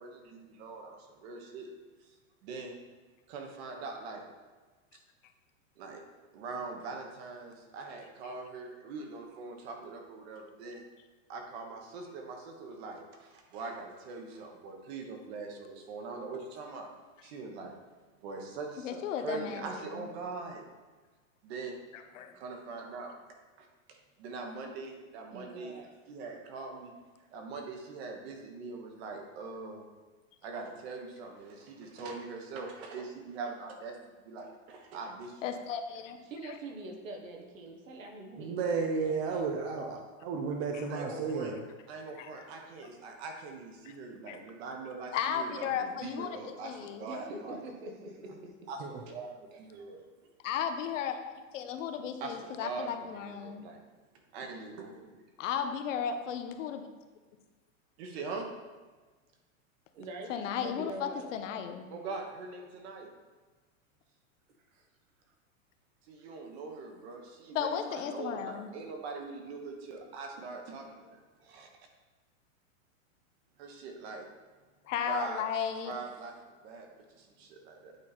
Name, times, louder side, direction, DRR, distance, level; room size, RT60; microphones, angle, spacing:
voice 1, 0.0-1.7 2.0-2.2 2.4-2.8 3.3-4.2 5.8-6.0 6.3-10.9 11.3-16.9 17.2-17.8 18.2-20.6 21.4-21.8 22.3-25.8 26.1-27.0 27.3-29.8 30.4-35.5 40.9-41.5 41.9-47.6 48.7-50.1 52.2-53.8 54.3-55.2 58.0-58.5 61.9-63.1 66.0-71.7 73.6-74.3 75.0-75.4 75.8-78.0, right 4 dB, 50° right, 3 dB, 1.4 m, -42 dB
voice 2, 18.8-19.6 19.9-20.1 22.1-22.3 35.4-36.2 40.7-40.8 42.2-42.3 44.3-44.4 45.1-47.1 50.4-53.7 55.4-56.9 60.3-61.9 67.5-68.7 74.9-76.0, left 8 dB, 65° left, 7 dB, 0.9 m, -35 dB
voice 3, 25.3-25.9 27.2-27.3 36.3-39.4 47.1-48.7 49.5-49.6 59.9-61.3 64.7-64.9 66.2-66.3, right 2 dB, 75° right, 2 dB, 1.6 m, -44 dB
voice 4, 38.4-41.6 48.8-49.0, right 4 dB, 25° right, 2 dB, 0.4 m, -33 dB
8.7 x 4.2 x 4.2 m, 1.3 s
supercardioid pair, 150°, 40 cm